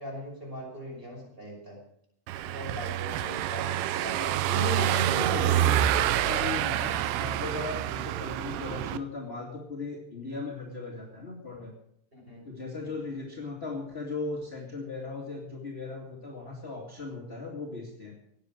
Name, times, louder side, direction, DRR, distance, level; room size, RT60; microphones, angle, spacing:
voice 1, 0.0-1.8 2.4-4.9 12.1-12.5 12.8-12.9, equal, 15° right, -1 dB, 5.8 m, -41 dB
Car passing by / Engine, 2.3-9.0, right 12 dB, 80° right, 2.4 m, -27 dB
voice 2, 4.5-11.7 12.4-18.1, left 3 dB, 25° left, -2 dB, 1.5 m, -37 dB
17.5 x 9.9 x 6.5 m, 0.73 s
omnidirectional pair, 4.7 m